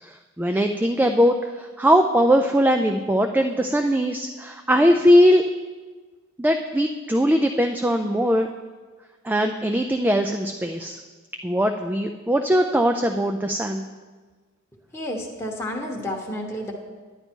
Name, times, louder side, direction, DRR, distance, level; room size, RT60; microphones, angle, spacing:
voice 1, 0.0-5.4 6.4-8.5 9.2-11.0 11.4-13.9, equal, 10° right, 4 dB, 0.3 m, -20 dB
voice 2, 14.9-16.7, left 1 dB, 10° left, -2 dB, 1.0 m, -30 dB
10.0 x 10.0 x 4.5 m, 1.4 s
head